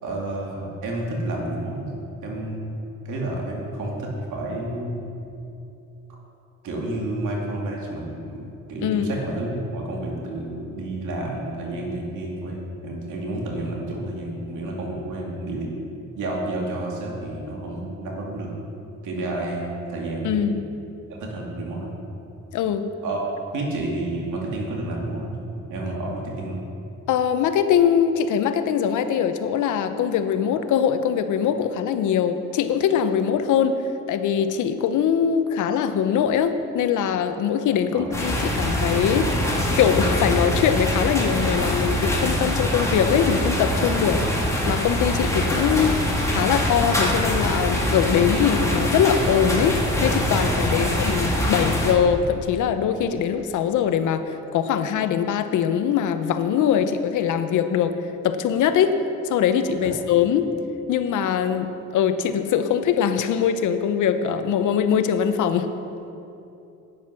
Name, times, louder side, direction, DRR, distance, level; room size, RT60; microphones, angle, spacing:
voice 1, 0.0-5.1 6.6-15.7 16.2-18.5 19.0-20.5 21.1-21.9 23.0-23.3 23.5-26.6 37.9-38.4 50.7-50.9 59.8-59.9, right 1 dB, 80° right, -2 dB, 2.6 m, -30 dB
voice 2, 8.8-9.1 20.2-20.6 22.5-22.9 27.1-33.8 34.1-39.4 39.8-44.2 44.7-46.0 46.3-58.0 58.2-59.0 59.2-60.5 60.9-65.7, left 8 dB, 80° left, 9 dB, 0.8 m, -22 dB
sound 1, 38.1-51.9, equal, 10° left, 2.3 m, -23 dB
10.5 x 9.5 x 5.9 m, 2.8 s
cardioid pair, 90°, 30 cm